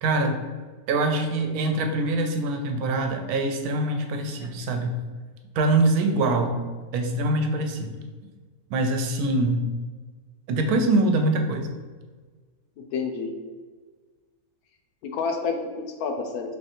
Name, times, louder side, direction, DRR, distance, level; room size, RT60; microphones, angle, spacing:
voice 1, 0.0-0.3 0.9-4.9 5.5-6.6 6.9-7.9 8.7-9.6 10.5-11.7, right 2 dB, 80° right, 5 dB, 1.1 m, -24 dB
voice 2, 12.8-13.3 15.0-16.6, left 5 dB, 85° left, 4 dB, 1.1 m, -29 dB
3.9 x 3.1 x 2.9 m, 1.4 s
omnidirectional pair, 1.6 m